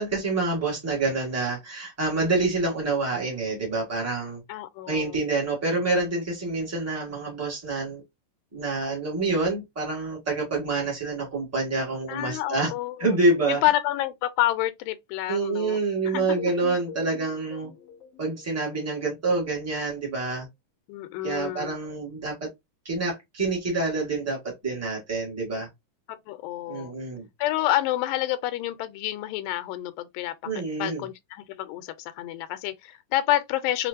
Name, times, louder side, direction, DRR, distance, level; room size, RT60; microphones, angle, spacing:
voice 1, 0.0-4.4 4.9-8.0 8.5-12.7 13.0-13.6 15.3-17.7 18.2-20.5 21.2-22.4 22.8-25.7 26.7-27.2 30.4-31.0, right 3 dB, 15° right, 0.4 m, -27 dB
voice 2, 4.5-5.2 12.1-13.2 13.5-16.4 20.9-21.8 26.1-26.9 27.4-33.9, left 15 dB, 90° left, 2.3 m, -29 dB
sound 1, 16.1-19.1, left 7 dB, 55° left, 0.9 m, -42 dB
5.9 x 2.5 x 2.6 m
omnidirectional pair, 3.9 m